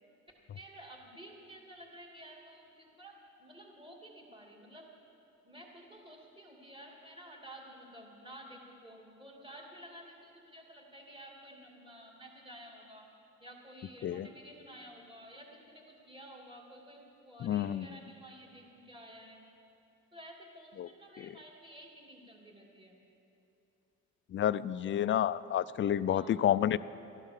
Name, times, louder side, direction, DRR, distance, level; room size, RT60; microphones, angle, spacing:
voice 1, 0.5-4.9 5.4-13.1 13.4-19.4 20.1-23.0 26.1-26.4, right 1 dB, 15° right, 0 dB, 2.6 m, -52 dB
voice 2, 17.4-17.9 20.8-20.9 21.2-21.4 24.3-26.8, left 10 dB, 40° left, 16 dB, 0.4 m, -30 dB
13.5 x 11.5 x 6.7 m, 2.8 s
cardioid pair, 90°, 30 cm